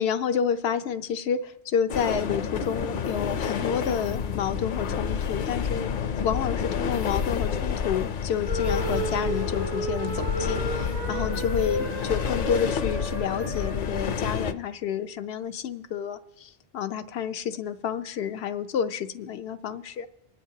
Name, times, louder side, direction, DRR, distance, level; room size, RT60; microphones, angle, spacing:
voice 1, 0.0-5.9 6.2-20.1, left 8 dB, 85° left, 10 dB, 0.9 m, -29 dB
sound 1, 1.9-14.5, left 6 dB, 60° left, 0.7 m, -29 dB
sound 2, 8.5-13.7, right 1 dB, 85° right, 3.7 m, -32 dB
25.5 x 9.7 x 2.8 m, 0.85 s
omnidirectional pair, 1.0 m